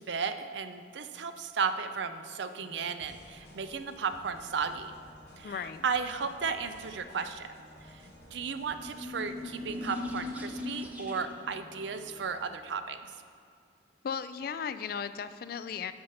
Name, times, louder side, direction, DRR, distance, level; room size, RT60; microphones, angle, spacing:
voice 1, 0.0-4.9 5.4-7.5 7.9-8.0 8.3-13.1, right 5 dB, 70° right, 10 dB, 0.5 m, -34 dB
Organ, 2.3-13.2, equal, 85° right, 1.6 m, -56 dB
sound 1, 3.0-10.3, equal, 70° left, 1.9 m, -57 dB
voice 2, 5.4-5.8 14.0-15.9, left 7 dB, 50° left, 12 dB, 0.3 m, -36 dB
sound 2, 8.4-11.5, left 2 dB, 10° right, 0.7 m, -39 dB
6.9 x 5.6 x 6.5 m, 2.3 s
head